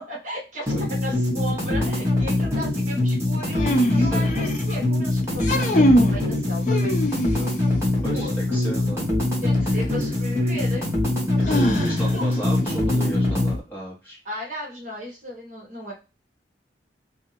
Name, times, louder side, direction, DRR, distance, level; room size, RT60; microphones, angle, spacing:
voice 1, 0.0-3.6 3.9-7.5 8.1-8.6 9.4-10.9 11.4-11.7 12.1-12.3 14.2-15.9, equal, 40° right, -1 dB, 1.1 m, -35 dB
sound 1, 0.7-13.6, left 2 dB, 15° right, 1.2 m, -23 dB
sound 2, 3.5-4.7 5.3-6.2 6.7-7.6 9.5-9.6 11.4-12.3, equal, 40° left, 0.6 m, -22 dB
voice 2, 3.9-4.3 8.0-9.1 11.5-14.2, right 1 dB, 10° left, -6 dB, 1.7 m, -34 dB
2.8 x 2.7 x 4.1 m, 0.30 s
head